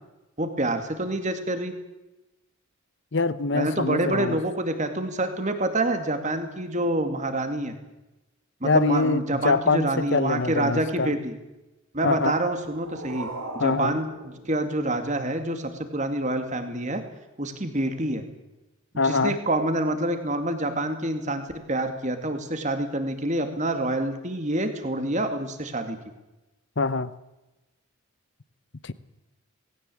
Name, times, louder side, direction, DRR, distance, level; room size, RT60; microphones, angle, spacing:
voice 1, 0.4-1.7 3.5-7.7 8.6-11.3 11.9-13.3 13.5-14.1 14.5-17.0 17.4-18.2 19.0-21.4 21.7-26.0, right 1 dB, 30° right, 7 dB, 2.4 m, -27 dB
voice 2, 3.1-4.4 8.6-11.1 12.0-12.4 13.6-13.9 19.0-19.4 26.8-27.1 28.8-28.9, left 3 dB, 55° left, 15 dB, 0.9 m, -24 dB
sound 1, 12.3-15.3, right 2 dB, 80° right, 4.5 m, -40 dB
19.5 x 17.5 x 8.6 m, 1.0 s
head